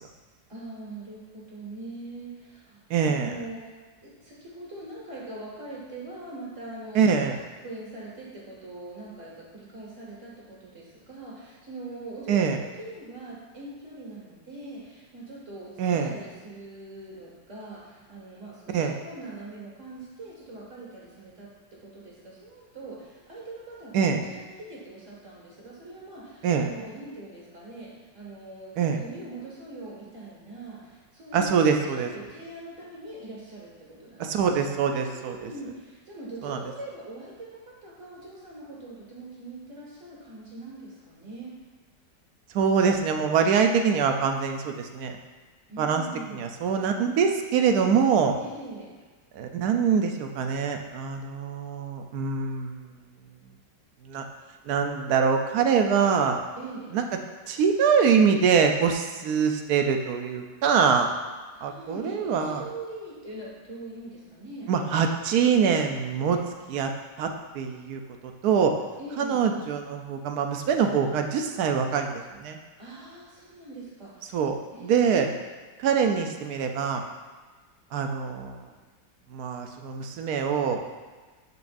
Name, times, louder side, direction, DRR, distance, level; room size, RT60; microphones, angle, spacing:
voice 1, 0.5-3.6 4.0-7.3 7.6-21.5 21.8-34.6 35.1-41.5 45.7-46.4 48.4-48.9 56.6-56.9 61.5-64.7 69.0-69.5 72.8-74.4 74.7-75.4, right 2 dB, 40° right, -6 dB, 2.3 m, -42 dB
voice 2, 2.9-3.3 6.9-7.4 12.3-12.6 15.8-16.1 18.7-19.0 23.9-24.2 26.4-26.7 28.8-29.0 31.3-32.1 34.2-35.5 36.4-36.6 42.5-45.2 45.8-46.0 46.3-48.3 49.3-52.9 54.0-54.2 54.6-56.4 56.9-57.0 57.5-61.1 61.6-62.6 64.7-66.4 66.7-66.9 67.2-67.3 67.5-68.7 69.2-72.6 74.3-75.3 75.8-77.0 77.9-78.6 79.3-80.8, right 6 dB, 65° right, 4 dB, 1.1 m, -24 dB
12.0 x 4.9 x 2.6 m, 1.3 s
omnidirectional pair, 1.9 m